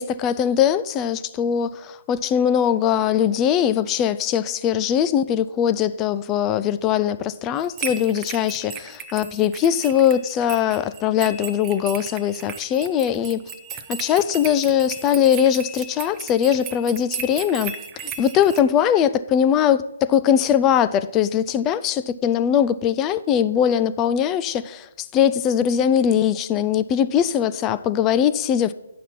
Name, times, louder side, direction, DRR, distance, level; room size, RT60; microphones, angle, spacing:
voice 1, 0.0-28.7, left 9 dB, 20° left, 13 dB, 0.3 m, -21 dB
sound 1, 7.6-18.6, right 6 dB, 20° right, 0.6 m, -36 dB
9.1 x 6.0 x 5.8 m, 0.91 s
figure-of-eight pair, 145°, 0 cm